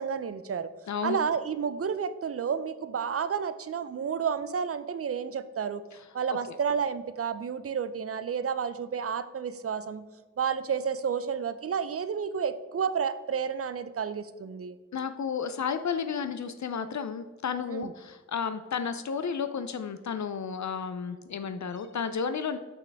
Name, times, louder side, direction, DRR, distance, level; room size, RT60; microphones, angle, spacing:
voice 1, 0.0-0.7 1.0-5.8 6.1-10.1 10.4-14.8 17.7-17.9, right 7 dB, 50° right, 13 dB, 0.4 m, -31 dB
voice 2, 0.9-1.2 6.5-6.6 14.9-22.6, left 6 dB, 65° left, 9 dB, 0.4 m, -32 dB
6.0 x 5.8 x 3.4 m, 1.3 s
wide cardioid pair, 60°, 30 cm